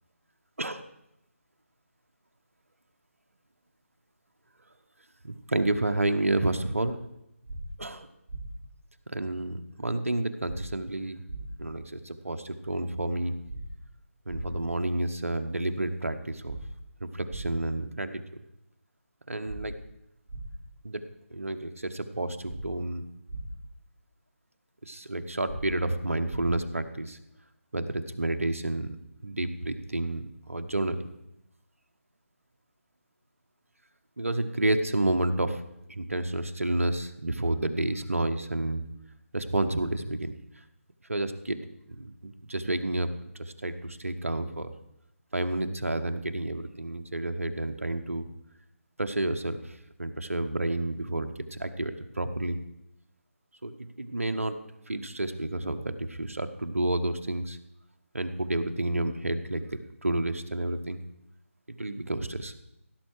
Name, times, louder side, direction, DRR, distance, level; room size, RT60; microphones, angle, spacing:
voice 1, 5.2-7.0 7.8-8.1 9.1-11.2 11.6-13.3 14.3-16.6 17.0-18.2 19.3-19.8 20.8-23.1 24.8-27.2 27.7-29.0 29.2-31.1 34.2-35.6 35.9-38.8 39.3-40.3 41.1-41.6 42.0-43.1 43.4-44.7 45.3-48.3 49.0-52.6 53.6-54.6 54.9-57.6 58.1-59.7 60.0-61.0 61.8-62.5, right 2 dB, 75° right, 9 dB, 1.0 m, -30 dB
sound 1, 7.5-7.6 8.3-8.4 10.5-10.6 11.3-11.4 13.5-13.6 14.3-14.4 16.5-16.6 17.3-17.4 19.5-19.6 20.3-20.4 22.5-22.6 23.3-23.4 25.5-25.6 26.3-26.4, right 2 dB, 40° right, 3.0 m, -38 dB
16.0 x 6.7 x 4.8 m, 0.83 s
figure-of-eight pair, 155°, 8 cm